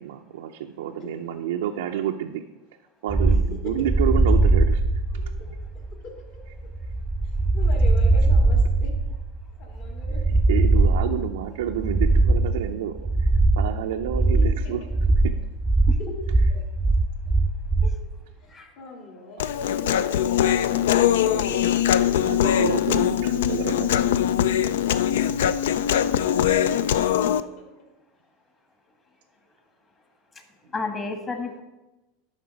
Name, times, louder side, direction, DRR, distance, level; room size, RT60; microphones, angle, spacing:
voice 1, 0.0-2.4 3.0-4.8 10.5-13.0 13.6-14.8 15.2-15.3 22.0-23.9 24.9-25.1, right 10 dB, 85° right, 4 dB, 0.4 m, -29 dB
sound 1, 3.1-18.0, right 2 dB, 5° right, 0.6 m, -21 dB
voice 2, 5.9-6.2 7.5-9.0 9.6-10.3 14.3-14.8 16.0-16.1 18.4-18.5 18.8-21.6 27.2-27.7, left 2 dB, 55° left, 1 dB, 2.2 m, -40 dB
Human voice, 19.4-27.4, left 10 dB, 85° left, 0.3 m, -22 dB
voice 3, 30.7-31.6, left 3 dB, 25° left, 5 dB, 1.4 m, -32 dB
11.5 x 3.9 x 5.1 m, 1.1 s
supercardioid pair, 130°, 0 cm